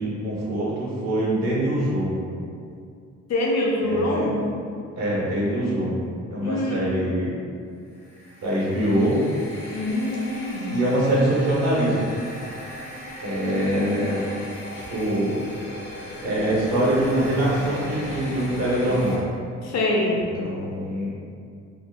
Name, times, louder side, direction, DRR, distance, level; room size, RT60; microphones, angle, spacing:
voice 1, 0.0-2.2 3.8-4.3 5.0-6.0 6.3-7.3 8.4-9.2 10.7-12.0 13.2-14.2 14.9-15.4 16.2-19.2 20.4-21.1, right 1 dB, 60° right, -7 dB, 0.8 m, -24 dB
voice 2, 3.3-4.4 6.4-6.8 9.7-10.7 13.4-14.2 19.6-20.2, left 1 dB, 60° left, -2 dB, 0.6 m, -25 dB
sound 1, 7.9-19.2, equal, 85° left, 1.1 m, -37 dB
3.4 x 2.0 x 2.2 m, 2.4 s
cardioid pair, 90°, 30 cm